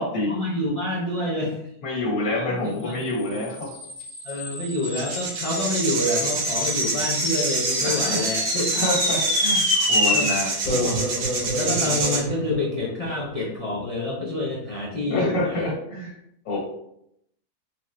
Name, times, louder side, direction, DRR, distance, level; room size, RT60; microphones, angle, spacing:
voice 1, 0.3-1.6 2.3-3.0 4.2-8.7 10.1-10.4 11.6-15.7, left 1 dB, 65° left, -4 dB, 0.3 m, -27 dB
voice 2, 1.8-3.8 7.8-8.3 8.7-11.0 15.1-16.1 16.4-16.6, left 1 dB, 85° left, -1 dB, 1.6 m, -27 dB
sound 1, 3.2-13.8, left 1 dB, 35° left, 0.9 m, -28 dB
sound 2, 4.0-4.1 4.8-12.2, right 3 dB, 75° right, 1.3 m, -27 dB
4.0 x 2.4 x 3.0 m, 0.75 s
omnidirectional pair, 1.5 m